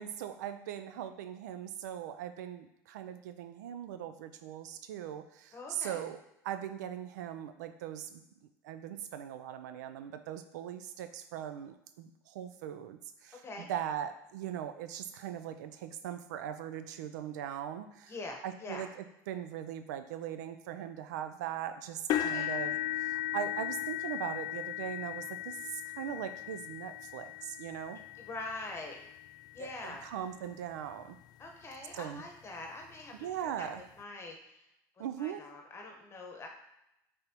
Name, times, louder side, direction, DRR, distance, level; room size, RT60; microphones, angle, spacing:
voice 1, 0.0-6.2 6.4-8.2 8.6-13.4 13.7-18.1 18.4-28.0 29.6-31.2 31.9-32.2 33.2-33.8 35.0-35.5, right 10 dB, 90° right, 10 dB, 0.4 m, -40 dB
voice 2, 5.5-6.0 13.4-13.7 18.1-18.8 22.2-22.5 28.2-29.0 29.5-30.1 31.4-33.1 33.4-34.7 35.2-36.5, left 2 dB, 30° left, 2 dB, 1.0 m, -44 dB
sound 1, 22.1-30.1 30.8-31.0 31.4-31.5 32.9-33.0, left 12 dB, 50° left, 0.4 m, -37 dB
5.3 x 3.4 x 2.9 m, 0.86 s
supercardioid pair, 95°, 9 cm